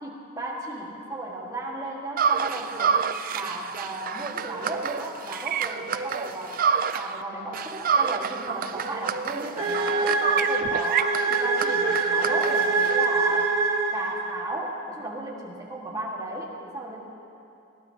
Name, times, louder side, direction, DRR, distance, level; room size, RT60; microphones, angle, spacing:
voice 1, 0.0-3.0 3.3-6.6 6.9-13.6 13.9-17.0, right 1 dB, 20° right, -3 dB, 1.7 m, -35 dB
sound 1, 2.2-7.2 7.5-13.1, right 6 dB, 45° right, 0.4 m, -28 dB
sound 2, 9.6-14.4, right 3 dB, 80° right, 1.9 m, -24 dB
20.5 x 16.5 x 2.9 m, 2.7 s
head